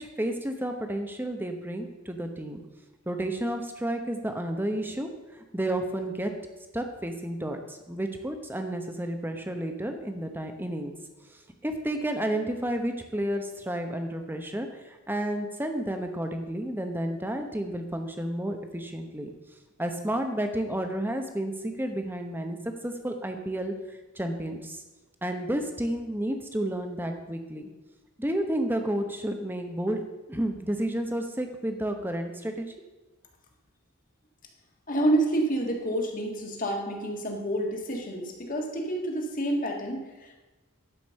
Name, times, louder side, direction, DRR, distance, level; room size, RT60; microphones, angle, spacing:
voice 1, 0.0-2.6 3.1-6.3 6.7-10.9 11.3-19.3 19.8-22.6 22.8-24.8 25.2-27.7 28.2-30.0 30.3-32.7, right 1 dB, 10° right, 5 dB, 0.9 m, -31 dB
voice 2, 34.9-40.3, right 1 dB, 40° left, 1 dB, 1.7 m, -28 dB
11.5 x 5.3 x 6.4 m, 1.2 s
head